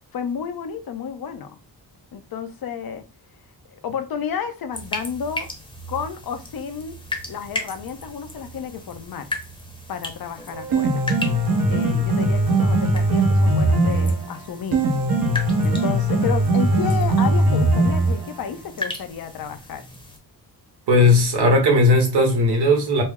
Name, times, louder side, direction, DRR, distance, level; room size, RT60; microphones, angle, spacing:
voice 1, 0.1-1.6 2.1-3.0 3.7-5.5 5.9-7.0 7.3-9.3 9.9-11.0 11.6-14.8 15.6-19.8, left 7 dB, 60° left, 0.7 m, -31 dB
sound 1, 4.7-20.2, left 1 dB, 15° left, 0.8 m, -36 dB
Piano, 10.5-18.5, right 2 dB, 70° right, 1.1 m, -20 dB
voice 2, 20.9-23.0, left 2 dB, 90° right, 1.3 m, -17 dB
4.3 x 2.0 x 3.5 m
wide cardioid pair, 115°, 39 cm